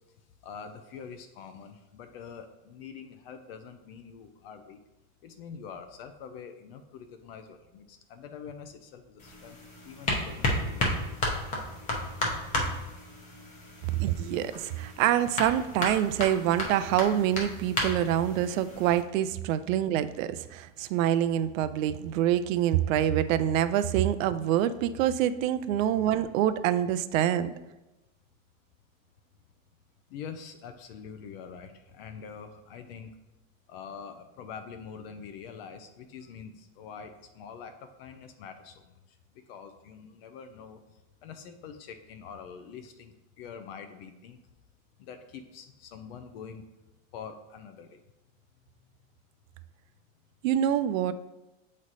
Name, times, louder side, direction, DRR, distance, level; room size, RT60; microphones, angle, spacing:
voice 1, 0.4-4.8 5.2-9.6 9.8-11.1 30.1-33.1 33.7-39.0 39.5-40.8 41.2-44.4 45.0-46.6 47.1-48.0, left 6 dB, 45° left, 8 dB, 0.4 m, -45 dB
sound 1, 9.2-19.0, left 1 dB, 20° left, 0.7 m, -33 dB
voice 2, 13.9-27.5 50.4-51.1, right 11 dB, 70° right, 13 dB, 0.5 m, -26 dB
7.3 x 3.2 x 4.0 m, 1.0 s
supercardioid pair, 160°, 42 cm